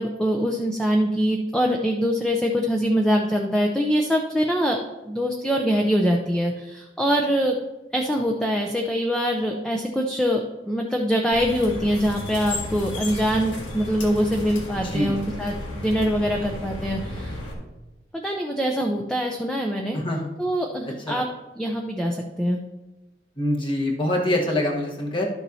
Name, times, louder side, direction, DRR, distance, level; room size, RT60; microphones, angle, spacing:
voice 1, 0.0-4.8 5.1-7.6 7.9-17.4 18.1-20.0 20.4-21.3 21.6-22.6, equal, 5° left, 1 dB, 0.5 m, -24 dB
sound 1, 11.3-17.5, left 1 dB, 85° left, 1.9 m, -33 dB
voice 2, 14.8-15.2 19.9-20.3 21.1-21.2 23.4-25.3, left 1 dB, 25° left, 0 dB, 1.2 m, -24 dB
12.0 x 7.2 x 2.7 m, 1.0 s
head